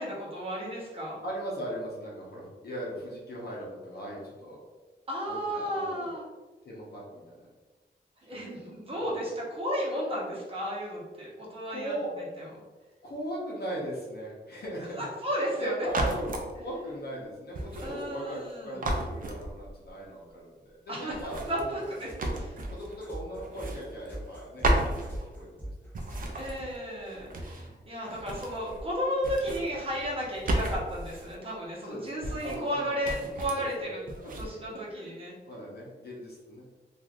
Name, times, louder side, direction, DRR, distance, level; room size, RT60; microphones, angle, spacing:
voice 1, 0.0-1.2 5.1-6.3 8.2-12.5 15.0-15.7 17.8-18.8 20.9-22.6 26.3-34.1 34.4-35.3, equal, 30° right, -5 dB, 0.9 m, -34 dB
voice 2, 1.2-4.6 5.2-6.1 6.6-7.5 8.3-9.2 11.6-12.1 13.0-15.0 15.6-21.9 22.2-25.7 27.5-27.8 31.8-33.9 34.2-34.3 34.9-36.7, right 1 dB, 60° left, -5 dB, 0.8 m, -39 dB
sound 1, 15.9-16.5 17.5-18.5 18.8-19.9 21.1-23.0 23.3-24.4 24.6-25.6 25.9-27.7 28.0-28.9 29.2-31.4 32.2-32.8 33.0-33.7 34.1-34.5, right 1 dB, 50° right, 0.4 m, -33 dB
sound 2, 21.6-26.8, right 1 dB, 10° left, 0.9 m, -42 dB
3.1 x 2.5 x 2.4 m, 1.2 s
wide cardioid pair, 145°, 18 cm